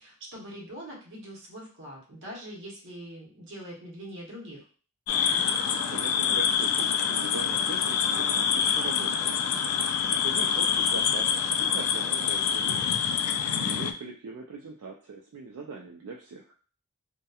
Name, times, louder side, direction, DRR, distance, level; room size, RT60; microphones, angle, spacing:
voice 1, 0.0-4.6, equal, 60° right, -2 dB, 0.9 m, -43 dB
sound 1, 5.1-13.9, left 7 dB, 75° left, 0.3 m, -26 dB
voice 2, 5.3-9.3 10.1-13.0 13.6-16.4, right 4 dB, 80° right, 0 dB, 0.4 m, -41 dB
2.8 x 2.1 x 2.3 m, 0.39 s
head